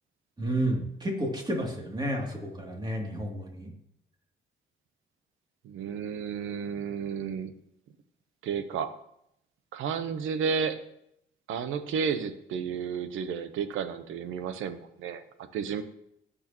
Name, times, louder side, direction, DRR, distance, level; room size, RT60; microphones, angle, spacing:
voice 1, 0.4-3.7, right 1 dB, 20° right, 0 dB, 2.8 m, -31 dB
voice 2, 5.6-7.5 8.4-8.9 9.7-10.8 11.5-15.8, right 6 dB, 85° right, 11 dB, 0.9 m, -32 dB
18.5 x 6.4 x 3.0 m, 0.76 s
cardioid pair, 90°, 20 cm